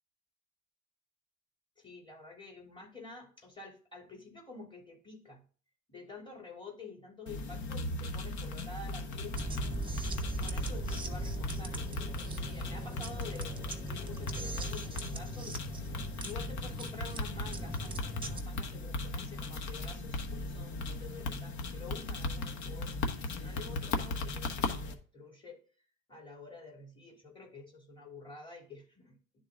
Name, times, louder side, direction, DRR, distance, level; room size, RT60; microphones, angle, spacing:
voice 1, 1.8-5.4 5.9-9.4 10.0-15.7 16.2-25.6 26.1-29.2, left 4 dB, 15° left, -1 dB, 3.2 m, -49 dB
sound 1, 7.3-24.9, left 3 dB, 65° left, 1.3 m, -37 dB
sound 2, 9.3-18.4, right 2 dB, 15° right, 1.1 m, -40 dB
11.0 x 3.9 x 3.7 m, 0.40 s
cardioid pair, 115°, 31 cm